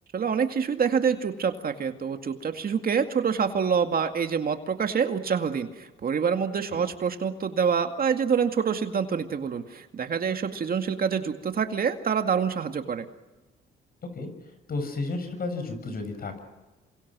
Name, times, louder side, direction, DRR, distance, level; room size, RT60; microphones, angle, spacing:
voice 1, 0.1-13.1, right 6 dB, 50° right, 6 dB, 2.2 m, -26 dB
voice 2, 14.7-16.4, left 3 dB, 50° left, 7 dB, 7.0 m, -32 dB
28.0 x 25.5 x 6.3 m, 1.1 s
cardioid pair, 90°, 20 cm